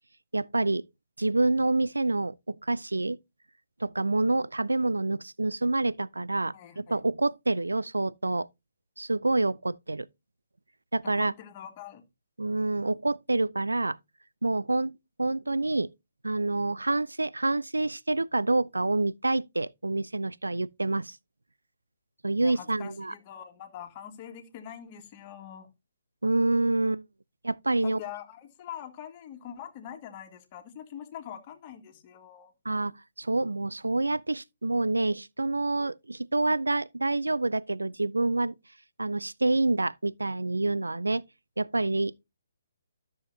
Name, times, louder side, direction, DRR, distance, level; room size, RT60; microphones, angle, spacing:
voice 1, 0.3-0.8 1.2-3.2 3.8-8.5 9.0-10.1 10.9-11.3 12.4-14.0 14.4-14.9 15.2-15.9 16.2-21.2 22.2-23.1 26.2-27.0 27.4-28.0 32.7-38.5 39.0-41.2 41.6-42.2, right 2 dB, 75° right, 0.4 m, -27 dB
voice 2, 6.5-7.0 11.0-12.0 22.4-25.7 27.8-32.5, left 10 dB, 30° left, 1.8 m, -43 dB
13.5 x 7.1 x 2.8 m
figure-of-eight pair, 135°, 0 cm